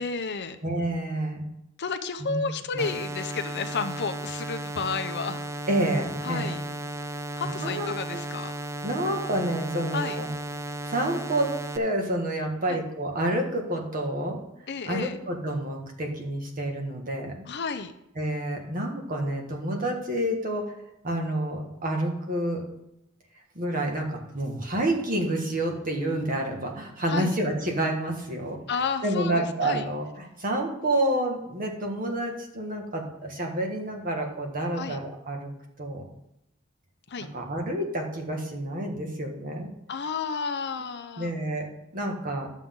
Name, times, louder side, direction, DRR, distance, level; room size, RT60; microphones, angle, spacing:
voice 1, 0.0-0.6 1.8-5.4 6.2-6.6 7.4-8.5 9.9-10.2 12.7-12.8 14.7-15.2 17.5-17.9 27.1-27.4 28.7-29.9 34.8-35.0 37.1-37.3 39.9-41.3, left 5 dB, 55° left, 8 dB, 0.7 m, -31 dB
voice 2, 0.6-1.4 2.2-2.4 2.7-2.8 5.7-6.6 7.4-8.2 8.8-10.3 10.9-11.5 11.7-14.4 14.9-17.3 18.2-20.6 21.0-22.6 23.5-28.6 29.0-35.5 35.8-36.0 37.3-39.7 41.2-41.6 41.9-42.5, right 1 dB, 40° right, 2 dB, 1.7 m, -29 dB
sound 1, 2.8-11.8, right 1 dB, 15° right, 0.4 m, -35 dB
11.0 x 7.5 x 3.8 m, 0.85 s
head